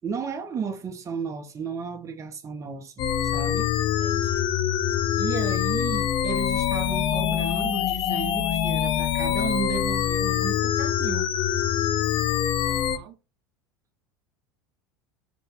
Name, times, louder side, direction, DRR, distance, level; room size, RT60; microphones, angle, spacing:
voice 1, 0.0-3.7 5.2-11.3, right 6 dB, 25° right, 0.6 m, -33 dB
sound 1, 3.0-13.0, left 10 dB, 40° left, 0.4 m, -25 dB
voice 2, 4.0-4.6 12.6-13.2, right 6 dB, 70° right, 0.7 m, -48 dB
3.0 x 2.7 x 3.1 m
hypercardioid pair, 90°, 13 cm